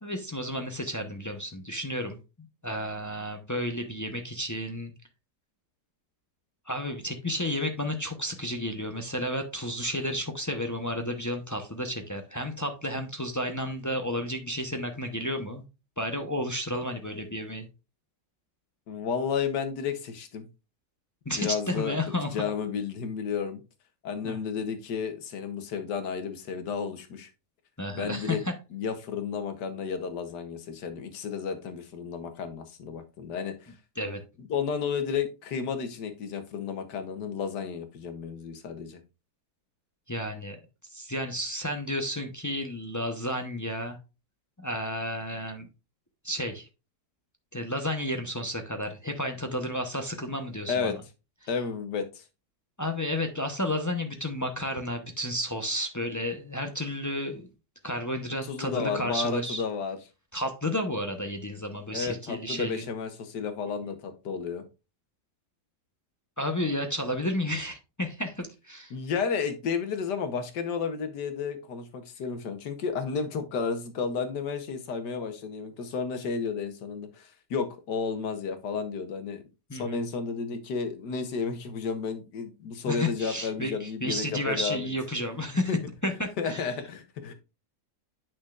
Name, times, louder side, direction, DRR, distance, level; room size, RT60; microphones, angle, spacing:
voice 1, 0.0-2.2 2.6-4.9 6.7-15.6 16.0-17.7 21.2-22.5 24.2-24.3 27.8-28.5 34.0-34.2 40.1-40.6 40.9-44.0 44.6-45.7 46.2-46.7 47.5-51.0 52.8-57.5 57.8-59.6 60.3-62.8 66.4-68.9 79.7-80.0 82.9-85.8 86.0-86.6, left 1 dB, 25° left, 0.4 m, -32 dB
voice 2, 18.9-20.5 21.4-23.6 24.0-27.3 27.9-28.4 28.7-33.7 34.4-39.0 50.7-50.9 51.5-52.2 58.4-60.0 61.9-64.6 68.9-79.4 79.7-84.9 85.7-85.8 86.4-87.3, left 5 dB, 85° left, 1.6 m, -32 dB
8.8 x 6.2 x 2.4 m
omnidirectional pair, 1.8 m